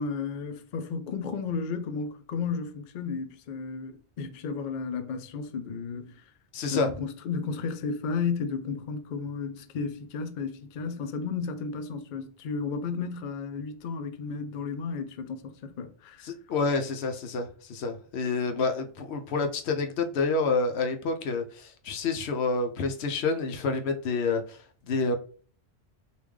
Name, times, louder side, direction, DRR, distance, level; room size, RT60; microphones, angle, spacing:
voice 1, 0.0-6.2 6.7-16.3, left 5 dB, 55° left, 0.5 m, -33 dB
voice 2, 6.5-6.9 16.2-25.1, left 4 dB, 75° left, 0.9 m, -28 dB
3.5 x 2.5 x 3.1 m
omnidirectional pair, 1.1 m